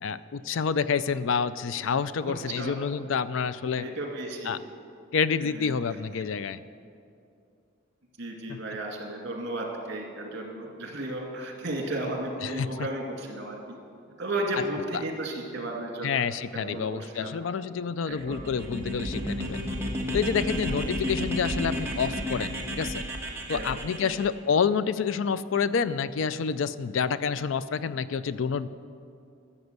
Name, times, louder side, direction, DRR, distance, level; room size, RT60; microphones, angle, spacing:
voice 1, 0.0-3.8 4.5-4.6 5.1-6.6 8.5-8.6 12.4-12.7 16.0-19.6 20.1-23.0 23.5-28.7, left 6 dB, 70° left, 15 dB, 0.4 m, -28 dB
voice 2, 2.2-2.7 3.8-4.5 5.4-5.8 8.2-13.8 14.2-16.1 16.5-17.3 18.1-18.5 20.6-20.7 23.5-24.2, right 1 dB, 55° right, 1 dB, 2.3 m, -34 dB
sound 1, 18.2-24.3, equal, 10° right, 1.4 m, -32 dB
13.0 x 7.2 x 8.0 m, 2.5 s
head